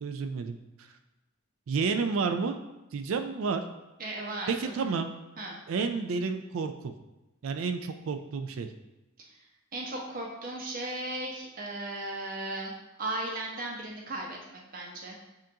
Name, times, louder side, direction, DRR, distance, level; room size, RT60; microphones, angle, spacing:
voice 1, 0.0-0.9 1.7-2.6 2.9-3.6 4.5-5.1 5.7-6.9 7.4-8.7, right 5 dB, 70° right, 7 dB, 0.4 m, -30 dB
voice 2, 4.0-4.7 5.4-5.6 9.2-9.3 9.7-15.2, right 1 dB, 45° right, -1 dB, 0.8 m, -36 dB
7.5 x 2.5 x 2.8 m, 1.0 s
head